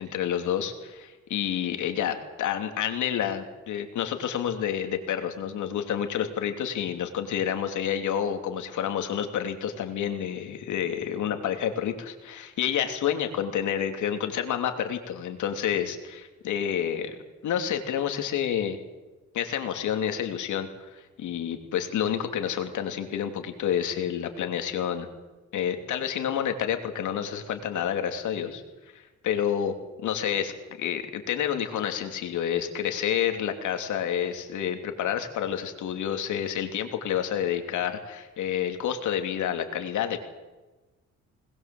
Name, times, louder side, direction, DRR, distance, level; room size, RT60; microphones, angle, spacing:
voice 1, 0.0-17.2 17.4-18.8 19.3-25.1 25.5-28.6 28.9-29.7 30.0-30.5 30.8-40.2, left 9 dB, 80° left, 6 dB, 3.0 m, -29 dB
21.0 x 20.0 x 7.8 m, 1.2 s
cardioid pair, 90°, 30 cm